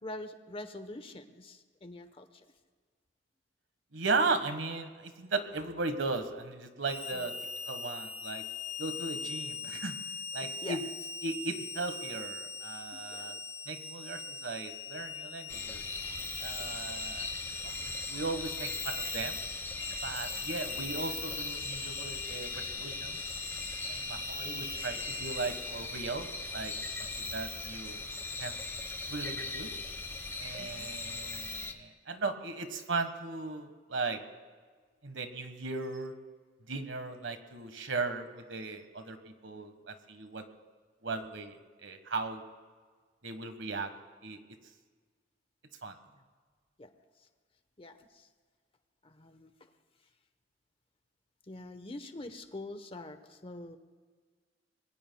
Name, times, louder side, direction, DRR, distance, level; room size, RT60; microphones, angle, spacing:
voice 1, 0.0-2.4 7.1-7.2 9.7-9.8 10.4-10.8 12.9-13.4 16.6-16.8 20.4-20.5 24.3-24.4 30.6-30.9 46.1-46.2 46.8-46.9 47.8-48.3 49.0-49.5 51.5-53.8, left 2 dB, 30° left, 9 dB, 1.0 m, -45 dB
voice 2, 3.9-7.3 7.7-8.4 8.8-10.0 10.3-10.8 11.2-13.3 13.7-15.8 16.4-17.3 17.6-19.4 20.0-23.2 23.9-26.7 27.0-28.0 28.4-28.6 29.1-29.7 30.4-34.2 35.0-36.1 36.7-40.4 41.0-42.4 43.2-43.9 44.2-44.4 45.8-45.9, right 3 dB, 85° right, 8 dB, 1.5 m, -37 dB
Harmonica, 6.8-25.6, left 4 dB, 70° left, 2.9 m, -42 dB
sound 1, 15.5-31.7, left 3 dB, 15° left, 1.0 m, -39 dB
26.5 x 21.5 x 2.3 m, 1.5 s
head